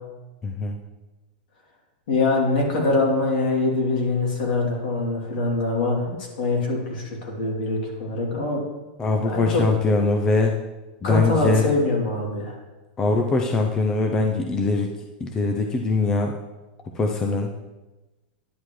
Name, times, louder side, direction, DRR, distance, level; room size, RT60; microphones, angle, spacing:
voice 1, 0.4-0.8 9.0-10.5 11.0-11.7 13.0-14.9 15.2-16.3 16.9-17.5, left 3 dB, 10° left, 2 dB, 0.4 m, -22 dB
voice 2, 2.1-8.7 9.2-9.6 11.0-12.6, left 3 dB, 65° left, -1 dB, 2.9 m, -24 dB
10.0 x 9.7 x 3.2 m, 1.1 s
supercardioid pair, 175°, 5 cm